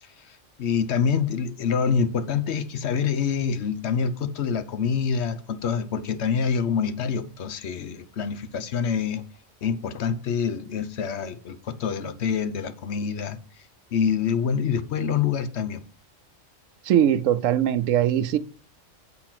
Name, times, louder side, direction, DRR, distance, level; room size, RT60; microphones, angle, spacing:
voice 1, 0.0-9.2 9.6-13.4 13.9-15.8, left 6 dB, 60° left, 1.0 m, -26 dB
voice 2, 16.8-18.4, right 10 dB, 75° right, 0.9 m, -21 dB
8.7 x 4.1 x 5.8 m
omnidirectional pair, 1.4 m